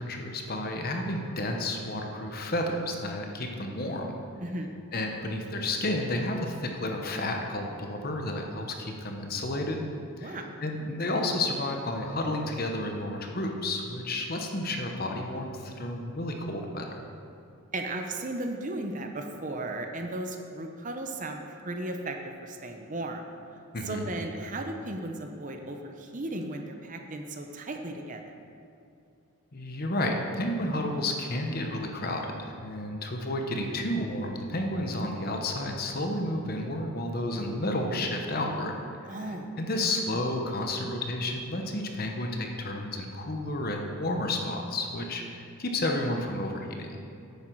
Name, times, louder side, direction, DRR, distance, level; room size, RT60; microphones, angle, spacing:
voice 1, 0.0-4.1 4.9-9.8 10.2-16.9 23.7-24.0 29.5-38.7 39.0-47.0, left 1 dB, 45° left, 2 dB, 1.0 m, -31 dB
voice 2, 4.4-4.8 10.2-10.5 17.7-23.3 23.8-28.2 39.1-39.5, right 2 dB, 35° right, 4 dB, 0.7 m, -35 dB
10.0 x 8.5 x 4.7 m, 2.5 s
head